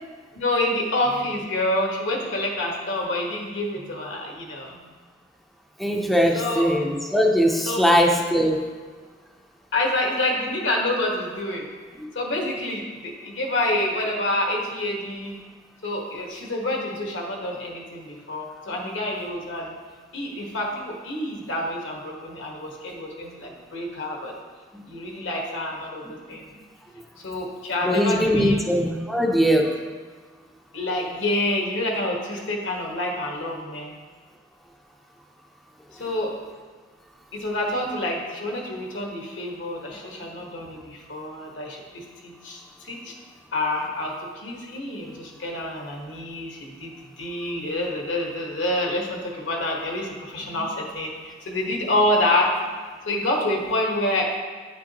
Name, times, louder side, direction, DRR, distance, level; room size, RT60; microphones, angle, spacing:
voice 1, 0.3-4.8 6.3-6.7 7.7-7.8 9.7-11.7 12.1-15.4 15.8-19.7 20.1-24.3 24.8-26.5 27.2-28.6 30.7-33.9 36.0-36.3 37.3-43.1 43.5-52.5 53.0-54.3, left 1 dB, 75° left, 0 dB, 1.4 m, -27 dB
voice 2, 5.8-8.6 12.0-12.1 24.7-24.8 27.8-29.7 50.6-50.7, equal, ahead, 0 dB, 0.5 m, -21 dB
9.3 x 6.1 x 2.9 m, 1.5 s
head